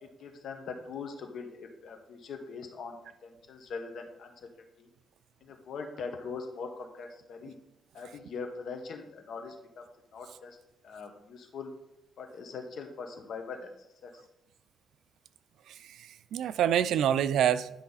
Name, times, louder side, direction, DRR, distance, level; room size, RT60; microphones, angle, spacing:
voice 1, 0.0-3.0 3.2-4.5 4.8-4.9 5.4-7.6 7.9-9.8 10.1-10.6 10.8-11.7 12.2-13.7 14.0-14.2, left 5 dB, 70° left, 4 dB, 1.4 m, -41 dB
voice 2, 15.7-17.7, right 10 dB, 85° right, 15 dB, 0.4 m, -27 dB
11.0 x 5.5 x 4.1 m, 0.86 s
cardioid pair, 115°, 0 cm